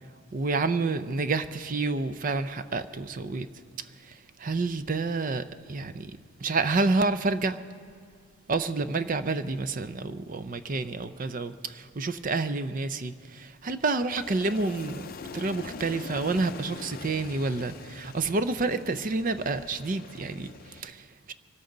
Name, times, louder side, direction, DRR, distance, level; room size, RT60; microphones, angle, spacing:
voice 1, 0.3-3.5 3.8-7.6 8.5-21.3, right 3 dB, 40° right, 0.5 m, -29 dB
Aircraft, 14.1-20.8, left 4 dB, 45° left, 0.5 m, -43 dB
24.0 x 13.0 x 3.9 m
head